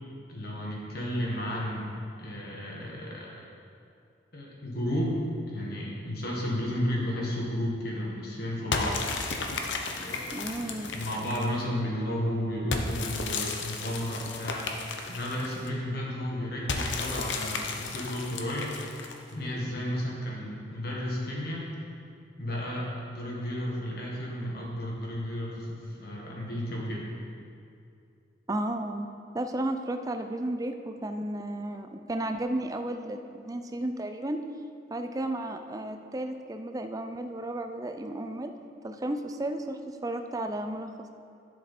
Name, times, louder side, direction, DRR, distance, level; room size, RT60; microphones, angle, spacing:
voice 1, 0.3-1.9 2.2-3.3 4.3-9.0 10.0-14.7 15.1-18.7 19.3-21.6 22.4-27.0, equal, 55° left, -3 dB, 1.7 m, -33 dB
sound 1, 8.7-11.6 12.7-15.7 16.7-19.3, left 3 dB, 80° left, 0.8 m, -34 dB
voice 2, 10.3-10.9 28.5-29.1 29.3-34.4 34.9-38.5 38.8-41.1, right 1 dB, 20° right, 6 dB, 0.4 m, -33 dB
11.5 x 6.7 x 4.3 m, 2.5 s
head